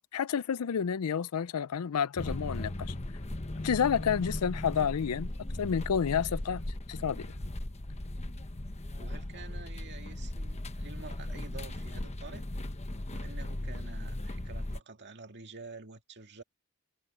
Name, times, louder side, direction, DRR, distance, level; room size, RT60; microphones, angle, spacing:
voice 1, 0.0-2.9 3.6-5.3 5.6-6.6 6.9-7.3, left 7 dB, 90° left, 0.5 m, -30 dB
sound 1, 2.2-14.8, left 1 dB, 30° left, 1.1 m, -37 dB
voice 2, 9.0-12.5 13.1-16.4, right 4 dB, 50° right, 2.1 m, -48 dB
head